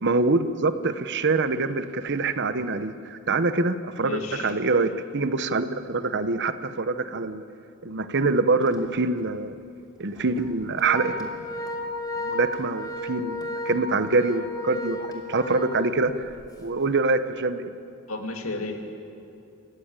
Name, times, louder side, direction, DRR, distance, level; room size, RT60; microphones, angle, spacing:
voice 1, 0.0-7.4 7.8-9.5 10.0-11.7 12.2-16.3 16.6-17.7, right 3 dB, 55° right, 11 dB, 0.9 m, -25 dB
voice 2, 4.0-4.5 18.1-18.8, left 3 dB, 70° left, 3 dB, 2.6 m, -32 dB
Organ, 8.6-8.8 9.2-9.3 10.2-16.5, left 1 dB, 20° left, 2.8 m, -34 dB
28.0 x 15.0 x 8.9 m, 2.5 s
head